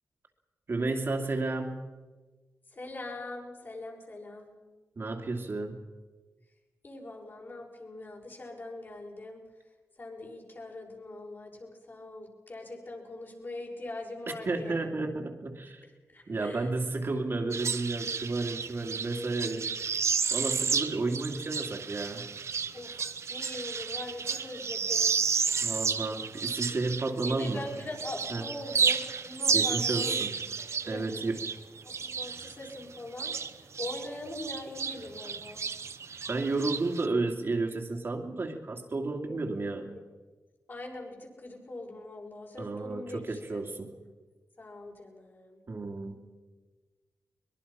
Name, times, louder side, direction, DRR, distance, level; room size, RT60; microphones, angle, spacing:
voice 1, 0.7-1.9 5.0-5.8 14.5-15.8 16.3-19.7 20.3-22.3 25.6-27.6 28.3-28.4 29.5-30.3 30.9-31.4 36.3-39.9 42.6-43.9 45.7-46.2, right 3 dB, 45° right, 3 dB, 2.6 m, -32 dB
voice 2, 2.7-4.6 6.8-9.4 10.0-15.1 16.1-16.6 22.7-23.0 23.3-25.2 27.2-30.2 30.8-31.0 31.8-33.3 33.8-35.6 39.3-39.4 40.7-43.4 44.6-45.6, left 2 dB, 40° left, -1 dB, 6.2 m, -42 dB
sound 1, 17.5-27.7 28.0-34.1 34.3-37.1, right 6 dB, 60° right, 1.0 m, -32 dB
22.5 x 22.0 x 5.9 m, 1.3 s
wide cardioid pair, 100°, 5 cm